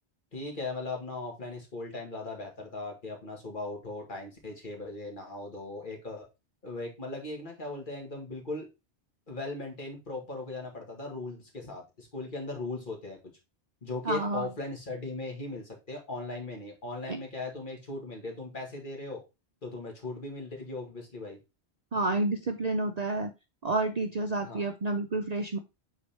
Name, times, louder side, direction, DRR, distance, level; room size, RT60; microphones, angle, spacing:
voice 1, 0.3-6.2 6.6-8.7 9.3-13.2 13.8-19.2 19.6-21.4 24.4-24.6, left 2 dB, 45° left, 1 dB, 1.8 m, -38 dB
voice 2, 14.0-14.5 17.1-17.2 21.9-23.3 23.6-25.6, right 2 dB, 45° right, 5 dB, 0.6 m, -29 dB
8.3 x 3.8 x 3.3 m, 0.25 s
omnidirectional pair, 1.1 m